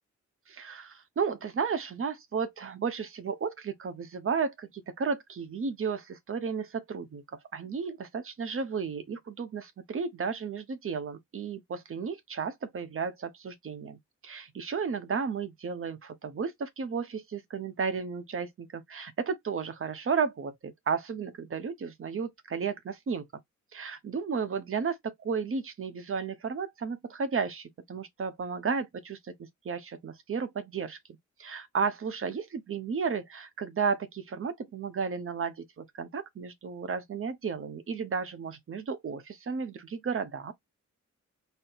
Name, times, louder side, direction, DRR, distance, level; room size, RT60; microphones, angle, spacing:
voice 1, 0.5-7.2 7.5-14.0 14.2-23.2 23.7-29.3 29.6-31.0 31.4-40.5, right 5 dB, 45° right, 0.8 m, -33 dB
4.3 x 2.0 x 3.8 m
wide cardioid pair, 125°, 29 cm